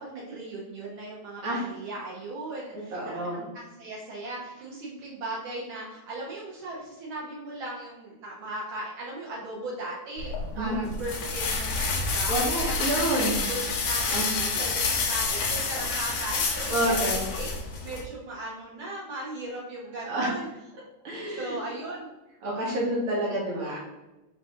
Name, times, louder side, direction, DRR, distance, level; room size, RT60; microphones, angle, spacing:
voice 1, 0.0-12.7 13.2-17.5 17.8-20.5 21.3-22.1, right 2 dB, 90° right, -5 dB, 1.1 m, -37 dB
voice 2, 2.9-3.5 10.6-10.9 12.3-13.4 14.1-14.3 16.7-17.2 20.0-20.3 21.0-21.9 22.4-23.8, right 1 dB, 65° right, -4 dB, 1.4 m, -28 dB
sound 1, 10.2-18.0, left 4 dB, 75° left, 1.6 m, -28 dB
4.6 x 2.4 x 3.8 m, 1.0 s
omnidirectional pair, 3.3 m